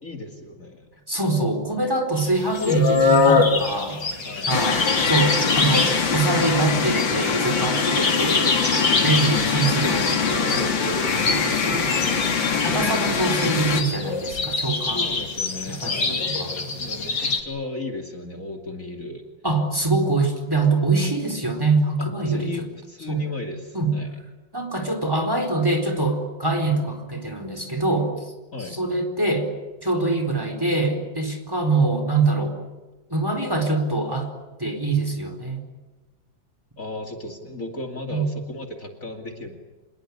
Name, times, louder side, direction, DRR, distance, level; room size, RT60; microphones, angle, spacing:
voice 1, 0.0-0.9 4.2-4.6 8.7-9.3 9.8-9.9 10.2-11.3 14.9-16.2 16.8-19.2 22.0-24.1 28.5-28.8 36.8-39.6, left 2 dB, 45° left, 3 dB, 3.1 m, -35 dB
voice 2, 1.1-4.1 4.5-8.5 9.0-10.5 11.3-11.9 12.6-15.1 15.7-16.7 19.4-22.7 23.1-23.2 23.7-23.9 24.5-28.1 28.6-29.5 29.8-32.6 33.1-34.3 34.6-35.6 38.1-38.2, right 2 dB, 10° right, 5 dB, 4.4 m, -24 dB
sound 1, 2.2-17.4, left 4 dB, 70° left, 3.8 m, -25 dB
sound 2, 4.5-13.8, left 5 dB, 90° left, 2.9 m, -23 dB
27.0 x 21.0 x 9.9 m, 1.2 s
omnidirectional pair, 2.0 m